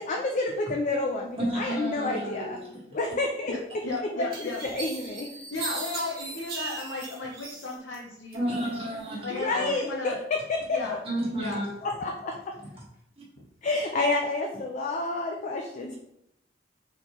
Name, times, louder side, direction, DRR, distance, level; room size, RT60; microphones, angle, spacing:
voice 1, 0.0-2.6 2.9-3.5 4.1-5.3 9.3-10.8 11.8-12.5 13.6-15.9, left 2 dB, 40° left, 1 dB, 0.4 m, -29 dB
voice 2, 1.4-3.0 8.3-9.7 11.0-11.7 13.2-13.3, right 1 dB, 30° right, -5 dB, 1.4 m, -32 dB
sound 1, 3.6-3.7 4.3-8.0 8.3-9.1, right 4 dB, 55° right, 1.2 m, -38 dB
voice 3, 3.8-4.6 5.5-8.7 9.2-10.2 10.7-11.0 11.4-11.6, left 3 dB, 65° left, -4 dB, 0.8 m, -34 dB
4.1 x 3.3 x 3.0 m, 0.81 s
head